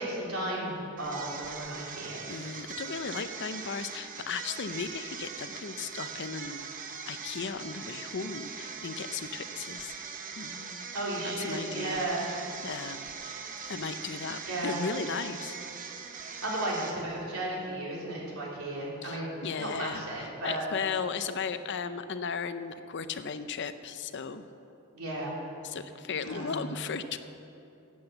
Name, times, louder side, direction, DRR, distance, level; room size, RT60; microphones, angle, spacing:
voice 1, 0.0-2.2 10.9-12.2 14.5-14.8 16.3-20.6 24.9-25.3 26.2-26.7, right 1 dB, 80° right, -4 dB, 3.4 m, -34 dB
sound 1, 1.0-17.3, right 6 dB, 40° right, 0.9 m, -41 dB
voice 2, 2.3-6.6 7.1-9.9 10.4-10.9 11.2-13.0 13.7-15.6 19.0-20.0 20.4-24.5 25.6-27.2, left 5 dB, 55° left, 11 dB, 0.6 m, -36 dB
12.0 x 8.8 x 7.9 m, 2.7 s
head